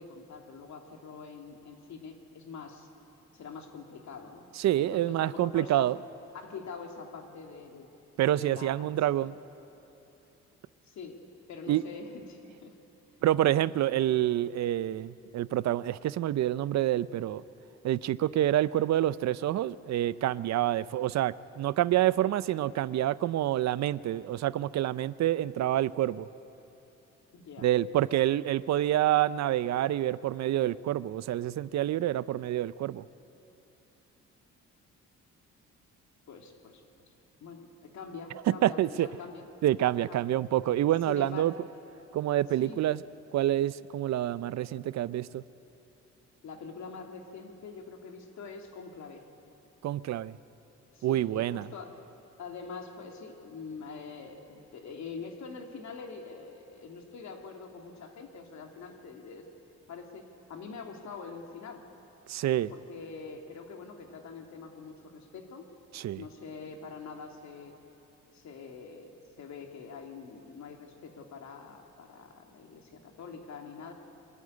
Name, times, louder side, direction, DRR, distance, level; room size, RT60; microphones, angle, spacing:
voice 1, 0.0-2.9 3.3-5.9 6.4-7.9 8.3-8.7 9.1-9.3 10.9-11.2 11.5-12.7 27.3-27.7 36.3-37.1 37.4-39.5 40.1-40.3 41.1-41.5 42.6-42.8 46.4-49.2 50.9-52.0 52.4-59.4 59.9-61.8 62.7-65.7 66.2-67.7 68.3-69.1 69.4-73.9, left 5 dB, 65° left, 3 dB, 2.5 m, -44 dB
voice 2, 4.6-6.0 8.2-9.3 11.7-11.8 13.2-17.4 17.8-26.3 27.6-33.0 38.6-39.1 39.6-41.5 42.1-43.0 43.3-45.4 49.8-50.4 51.0-51.6 62.3-62.7 65.9-66.2, right 13 dB, 65° right, 18 dB, 0.5 m, -27 dB
24.0 x 12.5 x 9.7 m, 2.9 s
cardioid pair, 90°, 30 cm